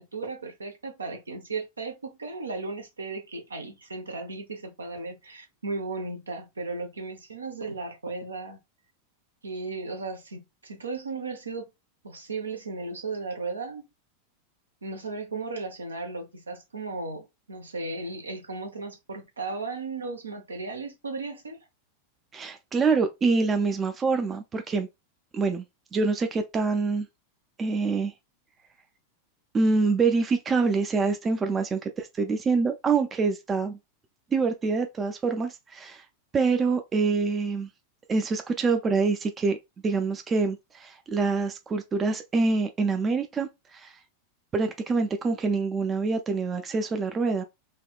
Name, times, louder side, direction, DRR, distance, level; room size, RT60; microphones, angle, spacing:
voice 1, 0.0-8.6 9.4-11.7 12.0-13.9 14.8-21.6, right 3 dB, 75° right, 0.7 m, -35 dB
voice 2, 22.3-24.9 25.3-25.6 25.9-27.1 27.6-28.1 29.5-33.8 34.3-36.0 36.3-37.7 38.1-39.6 39.8-43.9 44.5-47.4, right 4 dB, 20° right, 0.4 m, -25 dB
3.4 x 2.2 x 2.2 m
figure-of-eight pair, 90°, 0 cm